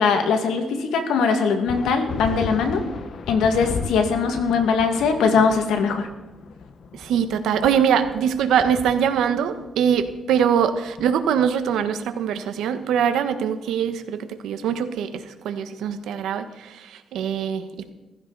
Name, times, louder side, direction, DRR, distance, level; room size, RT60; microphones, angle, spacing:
voice 1, 0.0-2.8 3.3-6.1, left 5 dB, 85° left, 6 dB, 2.1 m, -21 dB
sound 1, 1.7-11.6, left 5 dB, 60° left, 1.2 m, -35 dB
voice 2, 6.9-17.9, right 8 dB, 85° right, 9 dB, 1.3 m, -23 dB
15.5 x 15.0 x 4.1 m, 1.1 s
cardioid pair, 90°, 0 cm